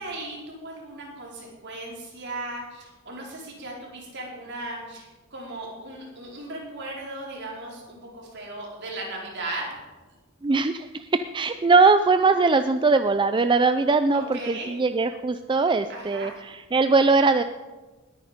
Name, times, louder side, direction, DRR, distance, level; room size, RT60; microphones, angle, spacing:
voice 1, 0.0-9.7 14.1-14.7 15.9-16.4, right 2 dB, 60° right, -3 dB, 4.6 m, -37 dB
voice 2, 10.4-17.4, right 4 dB, 25° right, 10 dB, 0.4 m, -21 dB
20.0 x 9.4 x 5.1 m, 1.2 s
head